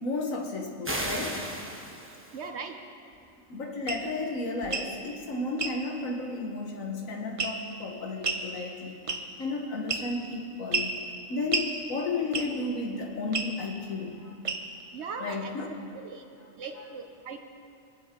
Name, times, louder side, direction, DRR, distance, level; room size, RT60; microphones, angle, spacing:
voice 1, 0.0-1.4 3.5-9.0 9.4-10.9 11.3-14.3 15.2-15.7, left 3 dB, 70° left, 2 dB, 1.7 m, -33 dB
sound 1, 0.8-2.4, right 1 dB, 10° right, 0.8 m, -34 dB
voice 2, 2.3-2.7 14.9-15.6 16.1-16.2 16.6-17.4, right 5 dB, 60° right, 6 dB, 0.9 m, -38 dB
sound 2, 3.9-4.0 4.6-4.9 5.6-5.8 7.4-7.7 8.2-8.5 9.1-9.4 9.9-10.3 10.7-10.9 11.5-11.7 12.3-12.6 13.3-13.5 14.4-14.8, right 4 dB, 40° right, 0.5 m, -30 dB
22.5 x 7.8 x 3.7 m, 2.5 s
omnidirectional pair, 1.5 m